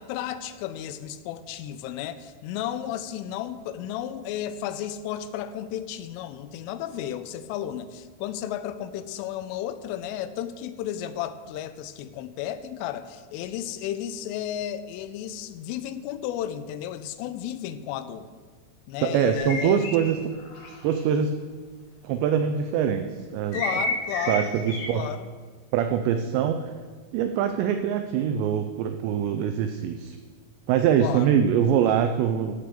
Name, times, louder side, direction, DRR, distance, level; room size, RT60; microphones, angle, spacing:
voice 1, 0.0-18.3 18.9-19.9 23.5-24.5 24.9-25.3 31.0-31.4, left 11 dB, 90° left, 12 dB, 3.2 m, -33 dB
voice 2, 19.0-20.2 20.8-21.4 22.0-23.1 23.3-23.8 24.3-25.1 25.7-26.7 27.1-30.2 30.7-32.5, right 8 dB, 90° right, 8 dB, 2.5 m, -23 dB
sound 1, 19.3-21.0 23.5-24.9, left 1 dB, 60° left, 4.7 m, -30 dB
14.5 x 5.0 x 6.8 m, 1.5 s
omnidirectional pair, 5.6 m